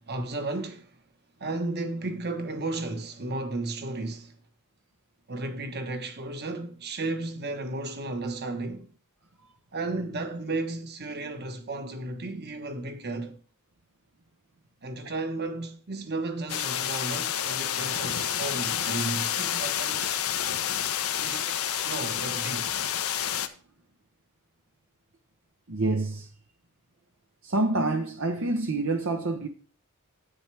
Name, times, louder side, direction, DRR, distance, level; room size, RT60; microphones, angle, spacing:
voice 1, 0.1-1.0 1.4-4.4 5.3-8.9 9.7-13.4 14.8-20.1 21.2-22.7, right 2 dB, 50° right, 1.3 m, -34 dB
sound 1, 16.5-23.5, left 9 dB, 75° left, 0.9 m, -29 dB
voice 2, 25.7-26.3 27.4-29.5, right 2 dB, 65° right, 0.9 m, -27 dB
10.0 x 8.8 x 3.4 m
head